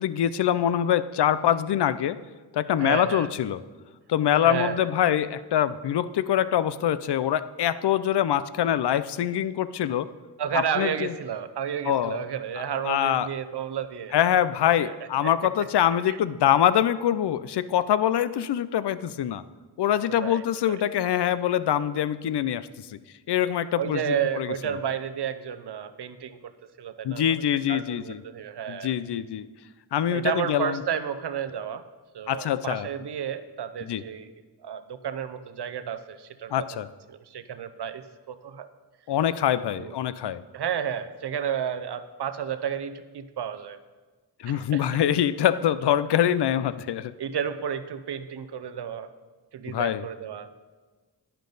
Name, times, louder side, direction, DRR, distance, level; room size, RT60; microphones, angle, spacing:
voice 1, 0.0-2.2 2.5-3.6 4.1-10.1 10.5-11.1 11.9-12.2 12.8-13.3 14.1-19.4 19.8-23.0 23.3-24.5 27.0-28.2 28.7-29.5 29.9-30.8 32.3-32.9 33.8-34.0 36.5-36.9 39.1-40.4 44.4-47.1 49.7-50.0, left 10 dB, 70° left, 15 dB, 0.5 m, -24 dB
voice 2, 2.8-3.3 4.4-4.9 10.4-14.2 14.6-14.9 15.2-15.3 16.1-16.2 20.1-20.8 23.8-26.5 26.8-27.2 27.7-28.9 30.1-31.8 32.1-34.3 34.6-36.8 37.1-38.7 39.7-40.0 40.5-43.8 44.5-45.0 47.2-49.1 49.5-50.5, right 8 dB, 70° right, 11 dB, 0.8 m, -32 dB
10.5 x 10.5 x 4.0 m, 1.3 s
cardioid pair, 70°, 42 cm